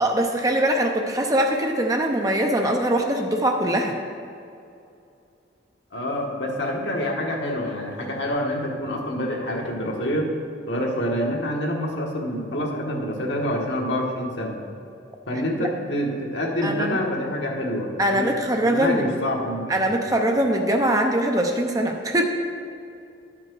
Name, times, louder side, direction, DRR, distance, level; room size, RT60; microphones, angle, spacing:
voice 1, 0.0-4.0 16.6-17.0 18.0-19.1 19.7-22.3, right 1 dB, 20° right, 2 dB, 0.6 m, -22 dB
voice 2, 5.9-10.3 10.7-14.6 15.3-18.3 18.6-19.9, equal, 75° left, -1 dB, 1.4 m, -27 dB
11.5 x 5.9 x 4.6 m, 2.5 s
head